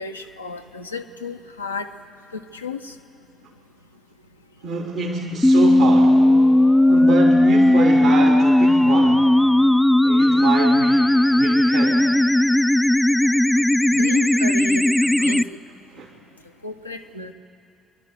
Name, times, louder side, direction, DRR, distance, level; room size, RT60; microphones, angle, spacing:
voice 1, 0.0-1.9 2.3-2.8 13.9-15.5 16.6-17.3, left 3 dB, 90° left, 3 dB, 0.7 m, -33 dB
voice 2, 4.6-6.3 6.9-9.3 10.0-12.1 15.2-15.3 15.9-16.1, right 4 dB, 65° right, -1 dB, 2.2 m, -26 dB
sound 1, 5.4-15.4, left 1 dB, 5° left, 0.4 m, -16 dB
26.0 x 11.5 x 9.4 m, 2.7 s
figure-of-eight pair, 50°, 0 cm